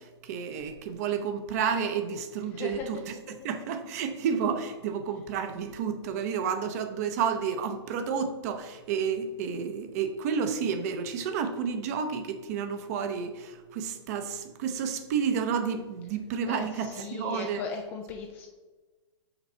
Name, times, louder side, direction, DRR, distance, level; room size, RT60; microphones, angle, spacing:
voice 1, 0.0-17.6, right 6 dB, 35° right, 8 dB, 0.7 m, -31 dB
voice 2, 2.5-3.0 3.3-3.5 16.5-18.5, left 5 dB, 15° left, 3 dB, 0.3 m, -38 dB
5.9 x 4.0 x 5.5 m, 1.2 s
hypercardioid pair, 165°, 16 cm